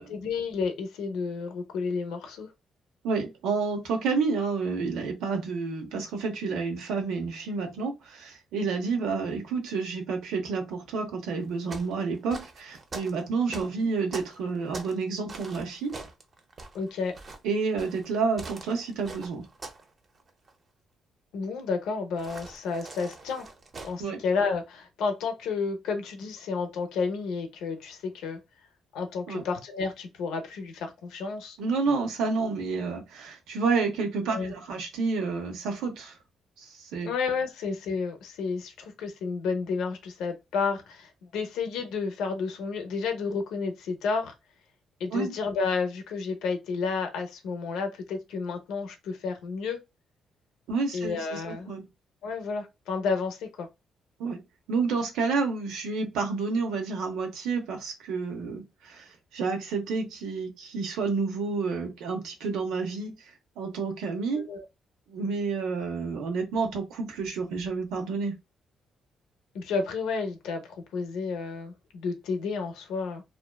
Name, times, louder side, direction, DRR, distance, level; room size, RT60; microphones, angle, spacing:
voice 1, 0.0-2.5 16.7-17.1 21.3-23.5 23.8-28.4 28.9-31.6 34.3-34.5 37.0-44.3 45.0-49.8 50.9-51.7 52.2-53.7 64.3-64.6 69.5-73.2, left 4 dB, 90° left, 0.6 m, -31 dB
voice 2, 3.0-16.0 17.4-19.5 24.0-24.2 29.3-29.4 31.6-36.2 36.6-37.1 45.1-45.4 50.7-51.8 54.2-54.4 54.7-63.2 63.6-64.5 65.1-68.4, right 4 dB, 90° right, 0.7 m, -29 dB
sound 1, 11.4-15.0 15.3-19.9 20.1-20.5 22.2-24.0, right 3 dB, 40° right, 0.6 m, -43 dB
2.6 x 2.2 x 2.2 m
cardioid pair, 90°, 0 cm